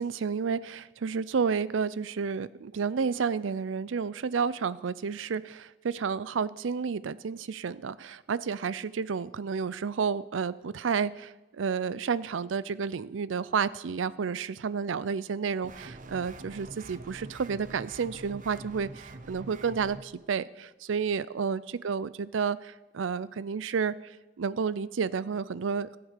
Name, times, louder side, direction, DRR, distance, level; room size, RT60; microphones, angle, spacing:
voice 1, 0.0-23.9 24.4-26.0, right 6 dB, 80° right, 18 dB, 0.5 m, -31 dB
sound 1, 15.6-20.0, right 2 dB, 45° right, 0.9 m, -45 dB
14.5 x 7.9 x 6.6 m, 1.0 s
head